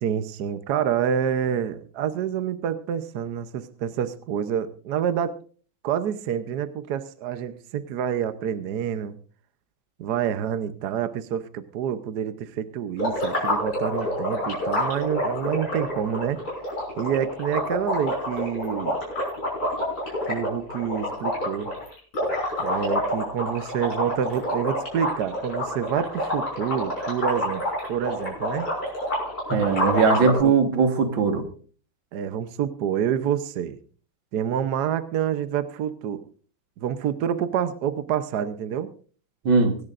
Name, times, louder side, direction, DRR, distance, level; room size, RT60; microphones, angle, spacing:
voice 1, 0.0-5.4 5.8-9.2 10.0-16.4 17.0-19.0 20.3-21.7 22.6-27.6 27.9-28.7 30.2-30.5 32.1-33.8 34.3-36.2 36.8-38.9, right 9 dB, 65° right, 12 dB, 1.2 m, -27 dB
sound 1, 13.0-30.4, left 1 dB, 50° left, 6.9 m, -28 dB
voice 2, 29.5-31.5 39.5-39.8, right 5 dB, 80° right, 7 dB, 2.3 m, -20 dB
25.0 x 10.5 x 2.5 m, 0.40 s
omnidirectional pair, 2.1 m